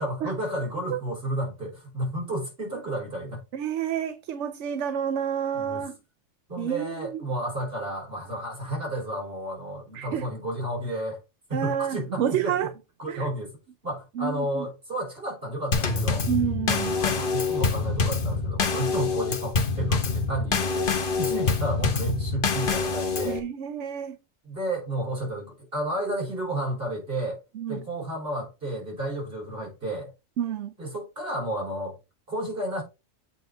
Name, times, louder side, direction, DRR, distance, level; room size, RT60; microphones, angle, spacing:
voice 1, 0.0-3.4 5.5-5.8 6.5-11.2 11.5-12.7 13.0-13.6 13.8-16.3 16.7-23.4 24.4-27.4 27.7-30.1 30.8-32.0 32.3-32.8, right 1 dB, 55° right, 5.1 m, -32 dB
voice 2, 3.5-5.9 6.6-7.2 9.9-10.3 11.5-12.7 13.1-13.3 14.2-14.7 16.3-16.9 23.2-24.2 27.5-27.8 30.4-30.7, right 9 dB, 80° right, 1.0 m, -29 dB
Drum kit / Snare drum / Bass drum, 15.7-23.4, left 4 dB, 50° left, 1.1 m, -26 dB
8.2 x 4.1 x 4.1 m
omnidirectional pair, 1.2 m